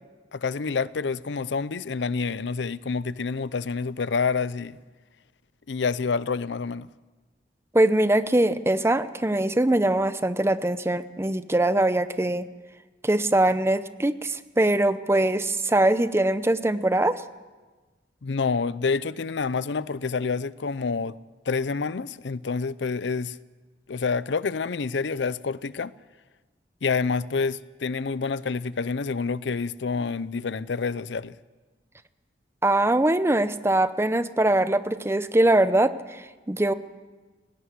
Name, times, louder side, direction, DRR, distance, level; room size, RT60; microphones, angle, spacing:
voice 1, 0.3-4.8 5.7-6.9 18.2-21.1 21.5-23.4 23.9-25.9 26.8-31.4, left 4 dB, 75° left, 0.6 m, -28 dB
voice 2, 7.7-12.5 13.0-17.2 32.6-36.7, right 1 dB, 15° right, 0.7 m, -22 dB
17.5 x 17.5 x 9.5 m
head